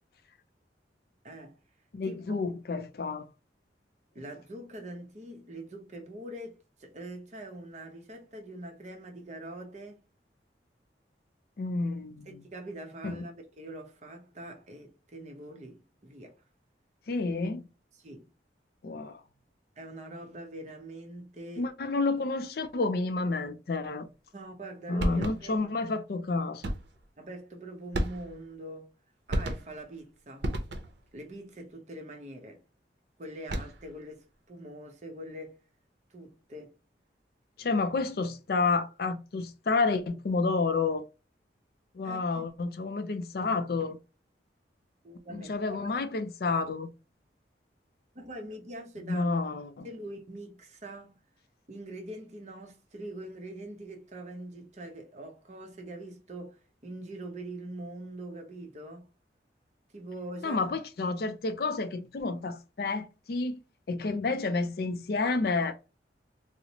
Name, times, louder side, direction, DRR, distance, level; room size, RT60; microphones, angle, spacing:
voice 1, 1.2-1.6 2.1-2.4 4.1-10.1 12.3-16.4 17.9-18.3 19.8-21.7 24.3-25.9 27.2-28.9 29.3-30.5 31.1-32.6 33.2-35.6 36.1-36.8 42.0-42.4 45.0-46.0 48.1-49.3 49.8-51.2 51.7-59.1 59.9-60.7, right 1 dB, 40° right, 0.7 m, -43 dB
voice 2, 1.9-3.3 11.6-12.3 13.0-13.3 17.1-17.7 18.8-19.2 21.6-24.1 24.9-26.7 37.6-41.1 41.9-44.0 45.3-46.9 49.1-49.9 60.4-63.6 63.9-65.8, left 3 dB, 55° left, 0.4 m, -30 dB
sound 1, 25.0-25.6 26.6-27.0 27.9-28.5 29.3-29.9 30.4-31.1 33.3-33.9, right 1 dB, 75° right, 0.7 m, -32 dB
3.9 x 2.0 x 2.8 m
head